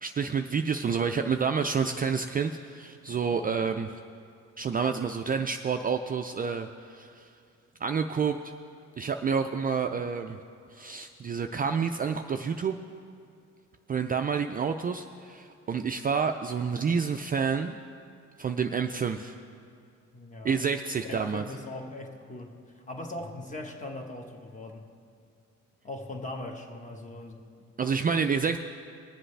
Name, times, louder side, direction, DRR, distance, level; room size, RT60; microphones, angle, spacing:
voice 1, 0.0-3.9 4.6-7.3 7.8-8.4 9.0-10.4 10.7-12.8 13.9-17.8 18.4-19.3 20.4-21.4 27.8-28.6, right 6 dB, 30° right, 6 dB, 0.4 m, -29 dB
voice 2, 20.1-20.6 21.0-24.9 25.8-27.6, left 1 dB, 25° left, 3 dB, 1.3 m, -40 dB
20.5 x 7.7 x 3.3 m, 2.4 s
cardioid pair, 90°, 30 cm